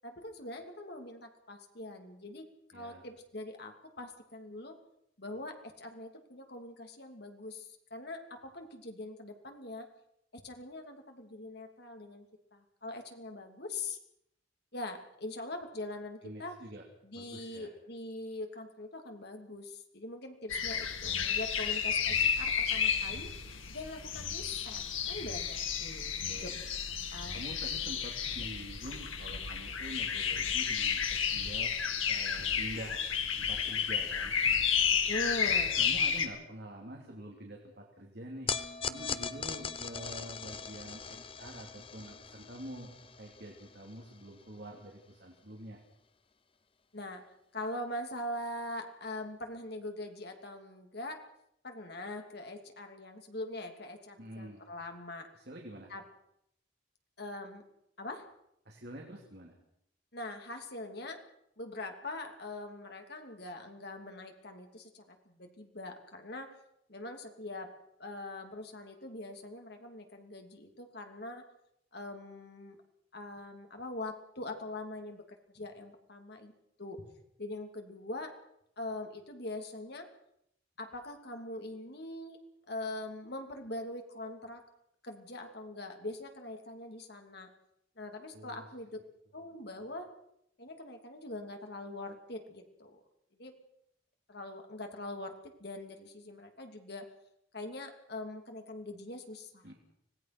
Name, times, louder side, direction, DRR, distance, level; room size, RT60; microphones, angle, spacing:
voice 1, 0.0-2.5 2.7-4.7 5.2-9.9 10.3-12.3 12.5-14.0 14.7-16.5 17.0-23.3 23.7-26.6 27.1-27.4 35.1-35.8 46.9-47.2 47.5-51.2 51.6-55.3 55.9-56.0 57.2-57.6 58.0-58.3 60.1-61.2 61.6-66.5 66.9-67.7 68.0-71.4 71.9-72.8 73.1-75.2 75.5-76.5 76.8-77.1 77.4-78.3 78.8-80.1 80.8-82.4 82.7-84.6 85.0-87.5 88.0-89.0 89.3-90.1 90.6-93.0 93.4-93.5 94.3-95.3 95.6-97.0 97.5-99.7, left 2 dB, 55° left, 4 dB, 2.8 m, -42 dB
voice 2, 2.7-3.0 16.2-16.8 17.1-17.7 26.2-26.6 27.3-31.7 32.1-33.0 33.4-34.3 35.8-38.5 38.9-42.9 43.2-45.8 54.2-54.6 55.3-55.9 58.6-59.6 88.3-88.7 99.6-99.7, right 1 dB, 55° right, 1 dB, 3.0 m, -46 dB
sound 1, 20.5-36.3, left 7 dB, 85° left, 2.5 m, -32 dB
sound 2, 38.5-44.9, left 6 dB, 25° left, 0.8 m, -40 dB
25.5 x 18.0 x 6.1 m, 0.77 s
head